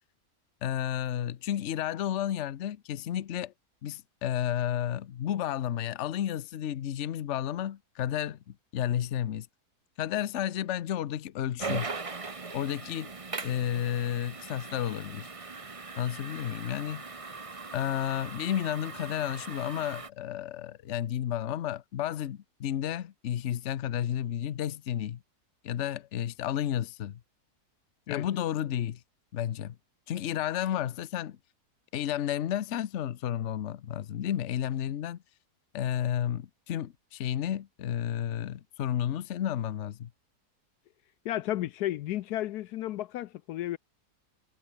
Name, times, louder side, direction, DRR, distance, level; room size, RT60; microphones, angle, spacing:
voice 1, 0.6-3.5 3.8-8.4 8.7-9.5 10.0-11.9 12.5-13.1 13.4-15.3 16.0-17.0 17.7-25.2 25.6-27.2 28.1-29.0 29.3-29.8 30.1-31.4 31.9-35.2 35.7-40.1, left 10 dB, 55° left, 1.0 m, -32 dB
sound 1, 11.6-20.1, right 4 dB, 25° right, 1.0 m, -40 dB
voice 2, 41.2-43.8, left 14 dB, 80° left, 1.1 m, -33 dB
omnidirectional pair, 1.7 m